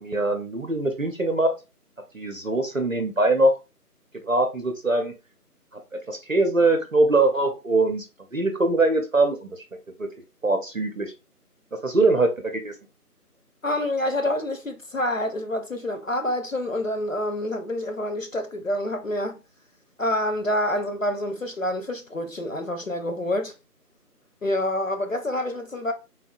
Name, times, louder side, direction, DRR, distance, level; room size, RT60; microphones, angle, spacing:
voice 1, 0.0-1.5 2.1-3.5 4.2-5.1 6.1-8.0 8.3-9.6 10.4-11.1 11.8-12.8, right 2 dB, 55° right, 0.6 m, -22 dB
voice 2, 13.6-19.4 20.0-23.5 24.4-25.9, left 1 dB, 60° left, 0.5 m, -27 dB
3.5 x 2.5 x 2.2 m
figure-of-eight pair, 175°, 47 cm